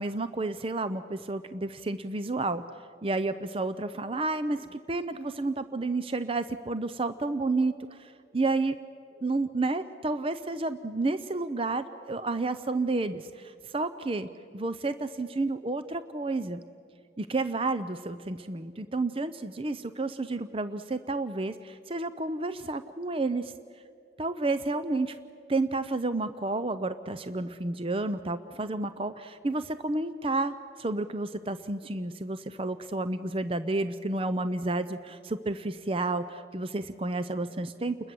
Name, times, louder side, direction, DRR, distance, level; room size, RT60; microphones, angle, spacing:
voice 1, 0.0-2.6 3.0-8.8 9.2-14.3 14.5-16.6 17.2-23.5 24.2-25.2 25.5-38.1, right 2 dB, 30° right, 12 dB, 0.6 m, -31 dB
30.0 x 21.0 x 7.7 m, 2.4 s
head